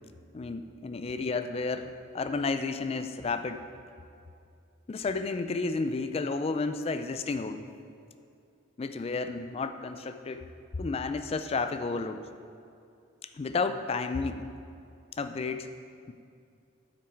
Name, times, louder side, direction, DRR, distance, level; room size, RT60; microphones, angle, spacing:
voice 1, 0.3-3.6 4.9-7.7 8.8-10.4 10.8-12.3 13.4-14.5 15.2-15.7 16.1-16.2, left 3 dB, 30° left, 9 dB, 0.3 m, -32 dB
8.4 x 6.2 x 4.5 m, 2.5 s
head